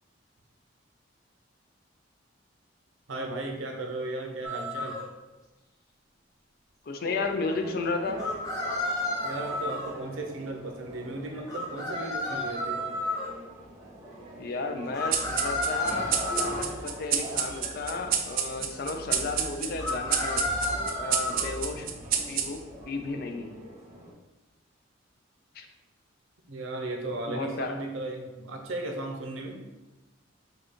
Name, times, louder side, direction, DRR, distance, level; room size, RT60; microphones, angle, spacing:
voice 1, 3.1-5.0 9.2-12.8 26.5-29.6, right 2 dB, 85° right, 3 dB, 0.8 m, -35 dB
sound 1, 4.4-5.0 8.2-9.9 11.5-13.3 14.9-16.7 19.8-21.5, left 1 dB, 15° left, 1.0 m, -31 dB
voice 2, 6.8-8.2 14.4-20.4 20.9-21.9 22.3-22.6 22.9-23.6 25.5-25.7 27.3-27.8, left 3 dB, 50° left, 5 dB, 0.5 m, -33 dB
sound 2, 7.0-24.1, right 1 dB, 15° right, 1.1 m, -44 dB
sound 3, 15.1-22.9, right 8 dB, 50° right, 0.4 m, -31 dB
5.0 x 2.4 x 4.4 m, 1.1 s
head